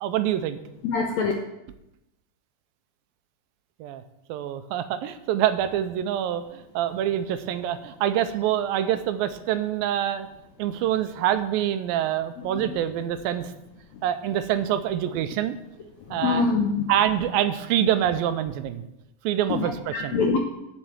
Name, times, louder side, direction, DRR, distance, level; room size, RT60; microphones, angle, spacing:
voice 1, 0.0-0.6 3.8-4.0 4.3-10.3 10.6-13.5 14.0-15.6 16.1-16.5 16.9-18.8 19.2-20.2, right 11 dB, 80° right, 10 dB, 2.4 m, -26 dB
voice 2, 0.8-1.3 12.4-12.8 16.1-16.9 19.5-20.4, left 4 dB, 80° left, 3 dB, 1.6 m, -25 dB
7.5 x 7.2 x 7.9 m, 0.89 s
omnidirectional pair, 4.2 m